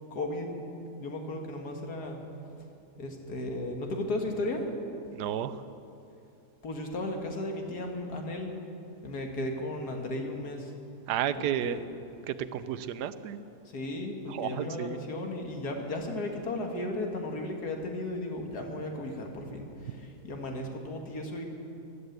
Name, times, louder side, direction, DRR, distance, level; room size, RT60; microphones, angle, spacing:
voice 1, 0.1-0.5 1.0-2.2 3.0-4.6 6.6-8.5 9.0-10.7 11.6-11.8 13.7-21.4, left 1 dB, 75° left, 2 dB, 2.2 m, -35 dB
voice 2, 5.1-5.6 11.1-11.8 12.3-13.4 14.3-15.0, right 10 dB, 85° right, 13 dB, 1.2 m, -32 dB
15.0 x 11.5 x 8.0 m, 2.7 s
omnidirectional pair, 1.7 m